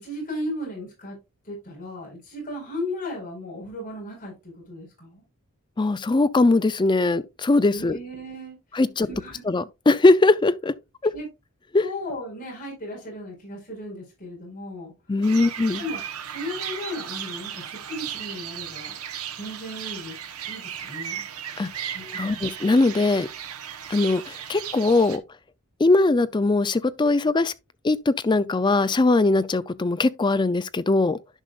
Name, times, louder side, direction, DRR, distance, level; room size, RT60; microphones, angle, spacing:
voice 1, 0.0-1.2 1.4-5.2 7.7-8.6 9.1-9.4 11.1-11.3 11.8-14.9 15.4-15.5 15.8-16.0 16.3-18.9 19.4-20.2 20.4-21.2 21.9-22.5, left 1 dB, 35° left, 4.5 m, -35 dB
voice 2, 5.8-8.0 8.7-9.1 9.5-10.7 11.0-11.1 11.7-11.8 15.1-15.8 21.6-21.7 22.1-23.3 23.9-25.2 25.8-27.5 27.8-31.2, left 2 dB, 20° left, 0.3 m, -20 dB
sound 1, 15.2-25.2, right 9 dB, 80° right, 0.9 m, -36 dB
11.0 x 5.2 x 2.4 m
head